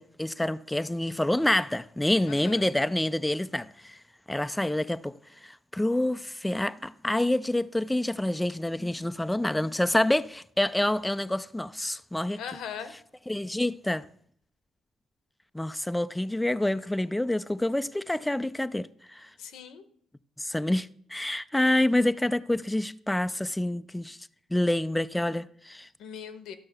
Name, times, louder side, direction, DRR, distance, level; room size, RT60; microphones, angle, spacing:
voice 1, 0.0-4.0 4.3-5.1 5.4-12.4 13.3-14.0 15.5-19.3 20.4-24.2 24.5-25.9, left 1 dB, 10° left, 0.4 m, -27 dB
voice 2, 2.3-2.6 12.4-12.9 19.4-19.8 26.0-26.6, left 8 dB, 80° left, 1.0 m, -39 dB
13.0 x 5.6 x 6.6 m
cardioid pair, 90°, 0 cm